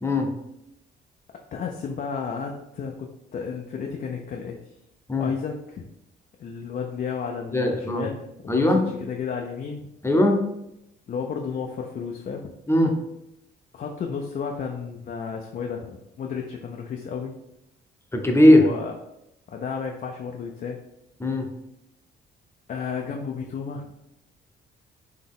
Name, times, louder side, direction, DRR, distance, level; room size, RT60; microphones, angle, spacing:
voice 1, 1.5-4.6 5.2-5.8 6.4-9.9 11.1-12.5 13.7-17.3 18.4-18.9 19.5-20.8 22.7-23.9, left 6 dB, 45° left, 2 dB, 0.5 m, -32 dB
voice 2, 7.5-8.1 8.5-8.8 10.0-10.4 12.7-12.9 18.1-18.6 21.2-21.5, left 1 dB, 10° left, 2 dB, 0.7 m, -18 dB
4.2 x 2.8 x 3.6 m, 0.85 s
cardioid pair, 90°, 20 cm